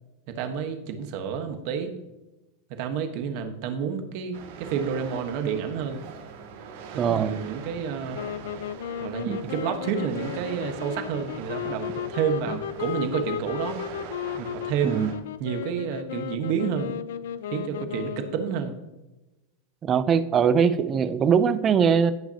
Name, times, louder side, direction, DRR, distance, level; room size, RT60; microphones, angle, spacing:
voice 1, 0.3-1.9 2.7-6.0 7.0-8.2 9.0-13.8 14.4-15.1 15.4-16.9 17.5-18.7, right 7 dB, 45° right, 7 dB, 1.2 m, -29 dB
sound 1, 4.3-15.1, right 6 dB, 65° right, 2.0 m, -42 dB
voice 2, 7.0-7.3 9.3-9.4 14.8-15.1 19.8-22.1, right 7 dB, 20° right, 14 dB, 0.4 m, -21 dB
sound 2, 8.1-18.5, left 9 dB, 85° left, 0.4 m, -34 dB
17.0 x 5.8 x 2.8 m, 1.0 s
supercardioid pair, 170°, 0 cm